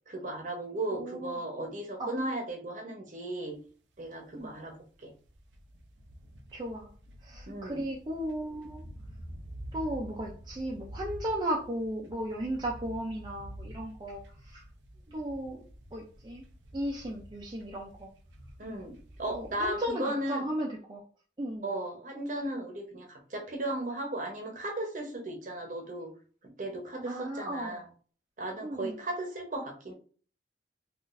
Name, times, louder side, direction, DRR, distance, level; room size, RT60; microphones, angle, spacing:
voice 1, 0.1-3.6 4.0-5.1 7.5-7.8 18.6-20.5 21.6-26.1 26.6-27.8 28.4-29.9, right 1 dB, 45° right, 2 dB, 0.8 m, -36 dB
voice 2, 0.9-1.4 2.0-2.1 4.3-4.5 6.5-6.9 7.2-8.8 9.7-14.6 15.1-15.6 15.9-16.4 16.7-18.1 19.3-21.0 21.4-21.7 27.0-27.8 28.6-29.0, right 1 dB, 25° right, -3 dB, 0.4 m, -35 dB
sound 1, 3.7-3.8 4.0-19.9, equal, 85° right, 0.5 m, -48 dB
3.8 x 2.5 x 2.5 m, 0.41 s
head